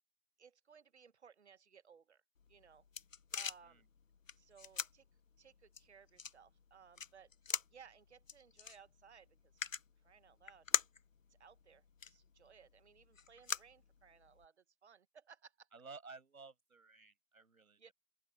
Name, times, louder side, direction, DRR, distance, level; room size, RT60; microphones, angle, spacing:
voice 1, 0.4-2.2 2.5-2.8 3.3-3.8 4.4-5.0 5.4-7.3 7.7-9.4 10.0-10.7 11.4-15.7 17.8-17.9, right 7 dB, 50° right, 1.3 m, -61 dB
sound 1, 2.4-14.4, left 6 dB, 60° left, 1.1 m, -44 dB
voice 2, 15.7-17.9, right 4 dB, 70° right, 6.7 m, -55 dB
open air
figure-of-eight pair, 145°, 43 cm